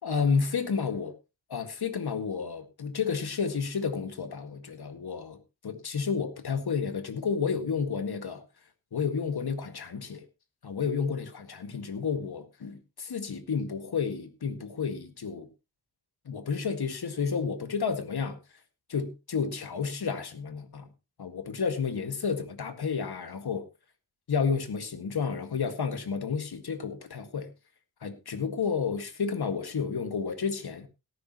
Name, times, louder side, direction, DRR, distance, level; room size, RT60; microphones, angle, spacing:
voice 1, 0.0-1.1 1.5-5.4 5.6-8.4 8.9-10.2 10.6-15.5 16.3-18.4 18.9-20.9 21.2-23.6 24.3-27.5 28.0-30.9, left 5 dB, 60° left, 1.9 m, -31 dB
17.5 x 10.0 x 3.0 m
wide cardioid pair, 90°, 43 cm